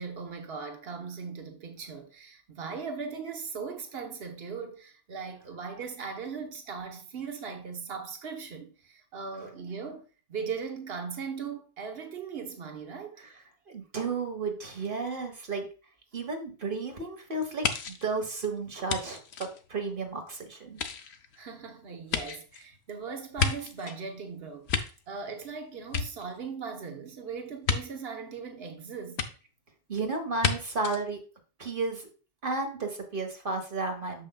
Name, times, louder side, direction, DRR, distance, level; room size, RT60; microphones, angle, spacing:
voice 1, 0.0-13.2 21.4-29.3, right 5 dB, 75° right, 1.3 m, -39 dB
voice 2, 13.7-15.7 16.1-20.8 29.9-31.2 31.6-32.1 32.4-34.3, right 3 dB, 55° right, 1.5 m, -33 dB
sound 1, 17.6-20.2 20.7-24.0 24.4-25.5 25.8-26.7 27.6-27.8 29.2-29.3 30.4-30.5 30.8-31.0, left 6 dB, 90° left, 1.0 m, -32 dB
8.2 x 6.6 x 2.3 m
omnidirectional pair, 1.1 m